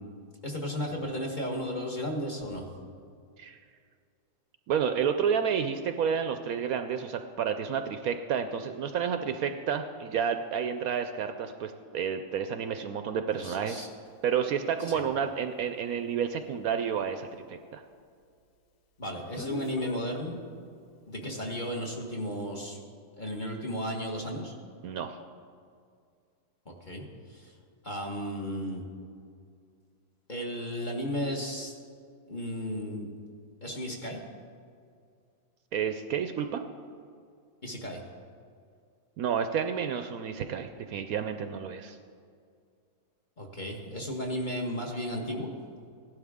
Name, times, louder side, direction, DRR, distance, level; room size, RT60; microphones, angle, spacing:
voice 1, 0.4-2.7 13.3-13.9 14.8-15.0 19.0-20.4 21.1-22.8 23.2-24.5 26.6-27.0 27.3-27.5 27.8-28.8 30.3-31.7 32.3-33.1 33.6-34.2 37.6-38.0 43.4-45.5, equal, 30° left, 0 dB, 1.4 m, -34 dB
voice 2, 4.7-13.9 14.2-17.8 24.8-25.2 35.7-36.6 39.2-42.0, right 7 dB, 70° right, 8 dB, 1.0 m, -30 dB
Speech, 14.1-14.2 19.4-20.0 21.2-21.5, left 4 dB, 80° left, 1.6 m, -39 dB
16.5 x 11.5 x 3.6 m, 2.3 s
omnidirectional pair, 1.7 m